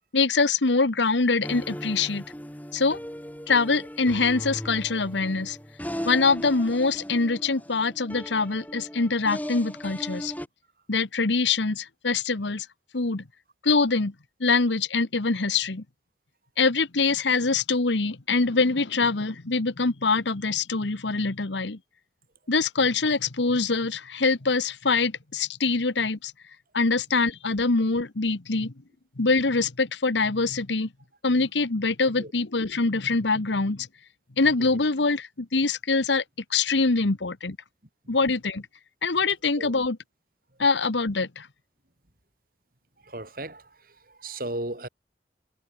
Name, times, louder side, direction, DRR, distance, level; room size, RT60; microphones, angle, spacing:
voice 1, 0.1-2.2 2.7-3.0 3.5-5.6 6.0-10.3 10.9-12.7 12.9-13.2 13.6-14.1 14.4-15.8 16.6-21.8 22.5-26.3 26.7-28.7 29.2-30.9 31.2-33.9 34.4-36.2 36.5-37.6 38.1-38.6 39.0-40.0 40.6-41.5, left 4 dB, 90° left, 1.3 m, -24 dB
sound 1, 1.4-10.5, equal, 10° left, 5.9 m, -38 dB
voice 2, 43.0-44.9, right 1 dB, 50° right, 5.9 m, -36 dB
head